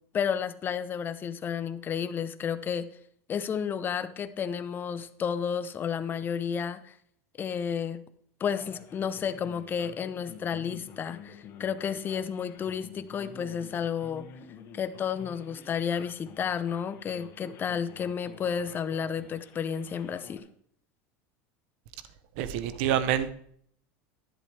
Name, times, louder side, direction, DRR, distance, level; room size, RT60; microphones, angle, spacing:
voice 1, 0.1-2.9 3.3-6.9 7.4-8.0 8.4-14.3 14.7-20.4, left 7 dB, 30° left, 12 dB, 0.8 m, -31 dB
Male speech man speaking, 8.4-20.4, left 6 dB, 45° left, 2.0 m, -49 dB
voice 2, 22.4-23.3, right 10 dB, 70° right, 12 dB, 0.9 m, -27 dB
11.0 x 10.5 x 3.4 m, 0.63 s
supercardioid pair, 110°, 7 cm